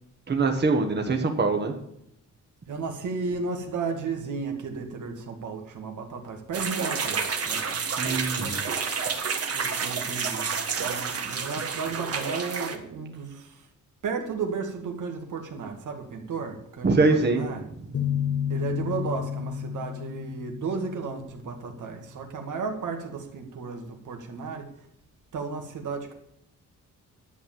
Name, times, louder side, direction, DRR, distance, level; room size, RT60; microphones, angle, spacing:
voice 1, 0.3-1.7 8.0-8.6 16.8-17.4, right 3 dB, 35° right, 1.6 m, -23 dB
voice 2, 2.7-7.9 9.5-13.7 14.0-17.7 18.5-24.8 25.3-26.1, right 5 dB, 75° right, 2.3 m, -34 dB
sound 1, 6.5-12.8, right 5 dB, 50° right, 1.7 m, -29 dB
sound 2, 17.9-21.6, left 9 dB, 50° left, 0.9 m, -31 dB
11.0 x 8.0 x 7.5 m
wide cardioid pair, 130°, 30 cm